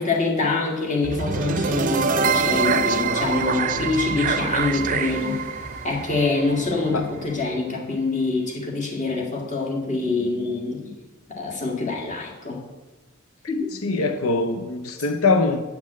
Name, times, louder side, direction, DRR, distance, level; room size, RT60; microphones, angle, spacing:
voice 1, 0.0-5.4 5.8-10.8 11.3-12.6 13.5-13.8, left 3 dB, 35° left, 1.8 m, -25 dB
sound 1, 1.0-7.1, right 5 dB, 40° right, 0.5 m, -25 dB
Motorcycle, 1.6-7.5, right 2 dB, 50° left, 3.0 m, -39 dB
voice 2, 13.8-15.6, left 3 dB, 85° left, 0.6 m, -22 dB
8.6 x 5.8 x 7.4 m
head